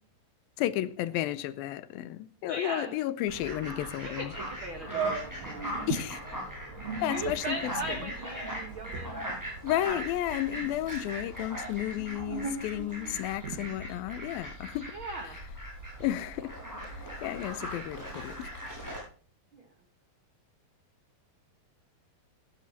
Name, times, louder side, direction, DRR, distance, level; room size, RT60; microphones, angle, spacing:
voice 1, 0.6-4.3 5.9-6.2 7.0-8.1 9.6-14.9 16.0-16.6 16.9-18.5, left 14 dB, 80° left, 2.4 m, -32 dB
voice 2, 2.5-2.9 4.0-5.9 7.1-9.1 14.9-15.4 19.5-19.6, right 2 dB, 80° right, 1.1 m, -38 dB
Fowl, 3.3-19.0, equal, 5° right, 7.9 m, -40 dB
sound 1, 4.3-4.4 4.9-6.1 6.7-10.2 10.5-11.1 11.8-13.8, right 5 dB, 60° right, 2.6 m, -38 dB
18.0 x 15.5 x 2.8 m
omnidirectional pair, 4.3 m